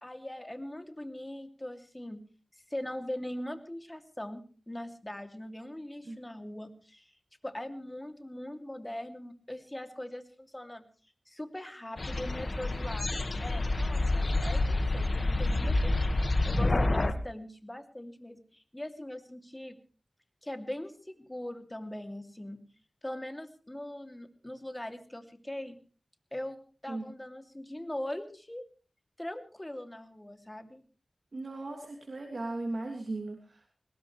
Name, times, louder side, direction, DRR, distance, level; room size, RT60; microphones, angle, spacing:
voice 1, 0.0-2.2 2.7-7.1 7.4-10.9 11.3-13.1 13.4-19.8 20.4-22.6 23.0-25.8 26.3-28.6 29.2-30.8, left 1 dB, 20° left, 7 dB, 2.8 m, -41 dB
sound 1, 12.0-17.1, left 2 dB, 55° left, 1.7 m, -28 dB
voice 2, 31.3-33.7, right 2 dB, 65° right, 2 dB, 3.0 m, -37 dB
21.0 x 20.0 x 3.3 m, 0.38 s
cardioid pair, 45°, 0 cm